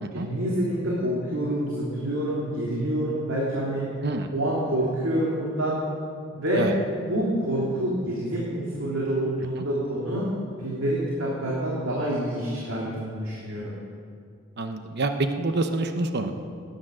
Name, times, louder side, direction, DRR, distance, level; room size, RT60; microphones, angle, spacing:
voice 1, 0.1-3.8 4.3-5.8 6.3-6.7 7.1-10.3 10.6-13.7, right 1 dB, 70° right, -5 dB, 2.7 m, -27 dB
voice 2, 14.6-16.3, right 2 dB, 55° right, 7 dB, 0.9 m, -27 dB
18.0 x 10.0 x 6.2 m, 2.4 s
head